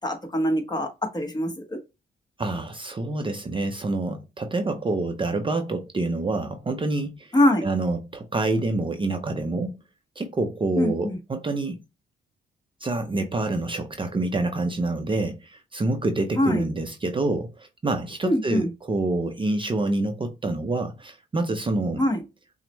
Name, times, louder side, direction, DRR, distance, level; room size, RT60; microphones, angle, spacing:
voice 1, 0.0-1.8 7.3-7.7 10.8-11.2 16.4-16.6 18.2-18.7 22.0-22.2, left 1 dB, 20° left, 1.1 m, -23 dB
voice 2, 2.4-7.3 7.6-9.8 10.2-11.8 12.8-22.0, right 2 dB, 25° right, 0.6 m, -27 dB
5.9 x 2.1 x 3.0 m
cardioid pair, 80°, 20 cm